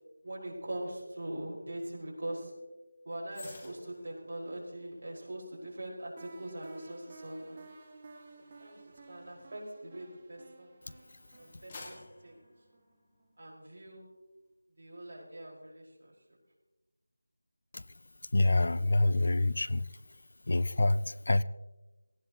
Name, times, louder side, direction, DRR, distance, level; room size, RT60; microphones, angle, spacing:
voice 1, 0.2-2.5 3.1-7.6 8.4-8.8 9.1-10.7 11.4-12.4 13.4-14.1 14.8-16.1, right 1 dB, 45° right, -3 dB, 5.3 m, -42 dB
sound 1, 3.3-10.7 11.2-13.5 13.9-14.1, left 3 dB, 20° left, 1.8 m, -55 dB
sound 2, 6.2-12.9, right 2 dB, 20° right, 1.7 m, -53 dB
voice 2, 18.3-19.9 20.5-21.4, left 2 dB, 55° left, 18 dB, 0.5 m, -26 dB
18.5 x 14.5 x 3.1 m, 1.1 s
figure-of-eight pair, 175°, 0 cm